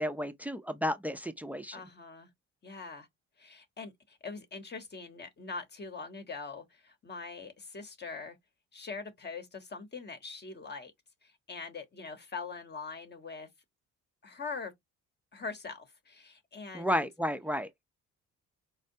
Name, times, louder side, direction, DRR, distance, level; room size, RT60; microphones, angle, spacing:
voice 1, 0.0-1.8 16.7-17.7, equal, 5° right, 0.4 m, -32 dB
voice 2, 1.7-2.3 2.6-3.1 3.4-8.4 8.7-10.9 11.2-13.5 14.2-14.7 15.3-17.1, left 4 dB, 35° left, 0.9 m, -43 dB
4.4 x 2.1 x 2.6 m
cardioid pair, 90°, 30 cm